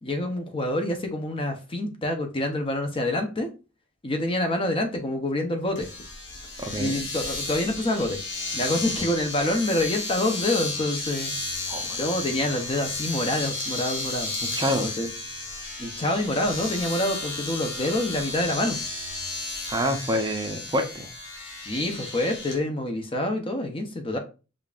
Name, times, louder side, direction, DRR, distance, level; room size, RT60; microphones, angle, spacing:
voice 1, 0.0-3.5 4.0-5.9 6.7-8.2 8.5-11.3 12.0-14.3 14.8-15.1 15.8-18.8 21.7-24.2, left 1 dB, 25° left, 0.6 m, -27 dB
Domestic sounds home sounds, 5.7-22.6, left 3 dB, 60° left, 1.0 m, -33 dB
voice 2, 6.6-7.0 11.7-12.0 14.4-15.0 19.7-21.1, equal, 20° right, 0.5 m, -27 dB
5.1 x 2.4 x 2.4 m
head